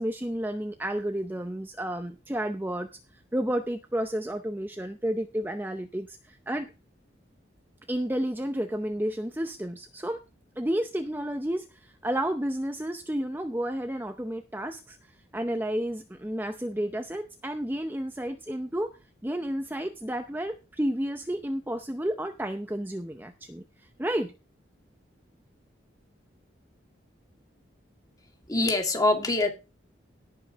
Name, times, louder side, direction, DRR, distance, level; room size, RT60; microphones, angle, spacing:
voice 1, 0.0-6.7 7.9-10.2 10.6-15.0 15.3-18.9 19.2-24.3, right 1 dB, 10° right, 7 dB, 0.6 m, -31 dB
voice 2, 28.5-29.5, left 2 dB, 20° left, 4 dB, 2.3 m, -24 dB
17.5 x 5.8 x 5.0 m, 0.29 s
head